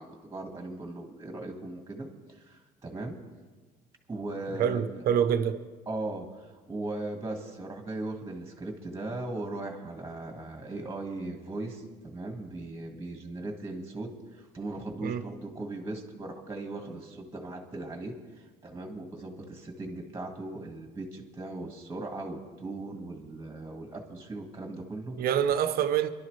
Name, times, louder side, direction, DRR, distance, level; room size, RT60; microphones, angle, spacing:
voice 1, 0.0-3.2 4.1-5.0 5.9-25.2, right 2 dB, 15° right, 1.9 m, -38 dB
voice 2, 4.6-5.6 15.0-15.3 25.2-26.1, right 9 dB, 65° right, 0.9 m, -26 dB
24.0 x 11.5 x 3.3 m
cardioid pair, 110°, 17 cm